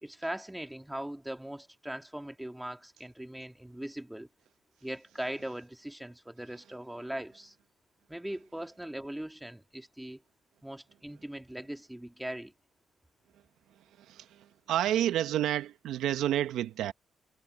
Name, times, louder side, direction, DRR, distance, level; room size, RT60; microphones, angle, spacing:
voice 1, 0.0-4.3 4.8-7.5 8.1-10.2 10.6-12.5, right 1 dB, 5° right, 2.6 m, -40 dB
voice 2, 14.7-16.9, right 12 dB, 85° right, 1.0 m, -29 dB
cardioid pair, 90°, 0 cm